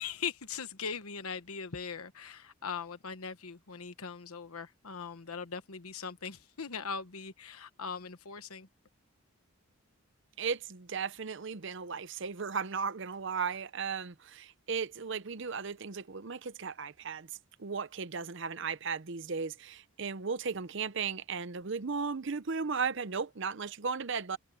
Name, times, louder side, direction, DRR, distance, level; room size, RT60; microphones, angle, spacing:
voice 1, 0.0-8.7, left 6 dB, 85° left, 1.1 m, -40 dB
voice 2, 10.4-24.4, right 5 dB, 55° right, 0.7 m, -36 dB
head